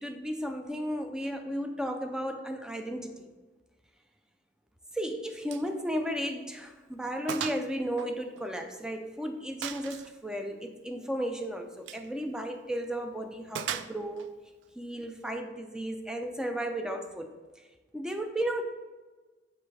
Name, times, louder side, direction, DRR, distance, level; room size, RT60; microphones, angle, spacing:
voice 1, 0.0-3.3 4.9-14.3 14.8-17.3 17.9-18.6, equal, 5° right, 5 dB, 0.4 m, -34 dB
Gunshot gunfire, 5.5-5.7 6.0-6.2 6.6-6.7 7.3-7.7 8.0-8.9 9.6-10.1 11.8-12.1 13.5-14.3, right 9 dB, 80° right, 0.3 m, -37 dB
5.6 x 5.1 x 3.3 m, 1.3 s
head